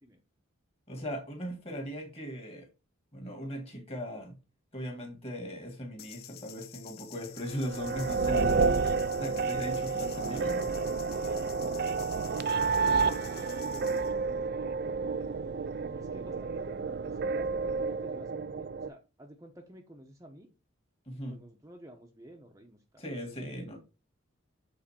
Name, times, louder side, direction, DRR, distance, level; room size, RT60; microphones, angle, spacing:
voice 1, 0.9-2.7 3.1-4.4 4.7-8.9 9.2-10.8 21.1-21.4 23.0-23.8, equal, 25° left, 2.0 m, -38 dB
sound 1, 6.0-14.1, left 12 dB, 45° left, 0.5 m, -50 dB
sound 2, 7.5-18.9, right 4 dB, 50° right, 0.4 m, -30 dB
voice 2, 13.1-14.1 15.9-20.5 21.1-23.0, right 1 dB, 15° right, 0.9 m, -51 dB
7.5 x 4.0 x 4.3 m
head